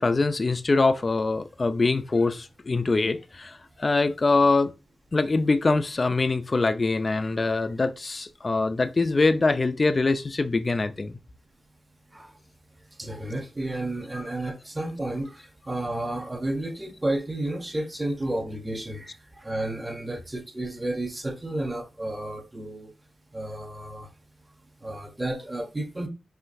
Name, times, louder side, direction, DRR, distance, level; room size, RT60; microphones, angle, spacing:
voice 1, 0.0-4.7 5.1-11.2, left 3 dB, 30° left, 0.4 m, -23 dB
voice 2, 13.0-22.9 23.3-24.1 24.8-26.1, right 1 dB, 15° right, 0.9 m, -32 dB
5.7 x 3.1 x 2.6 m
wide cardioid pair, 130°, 0 cm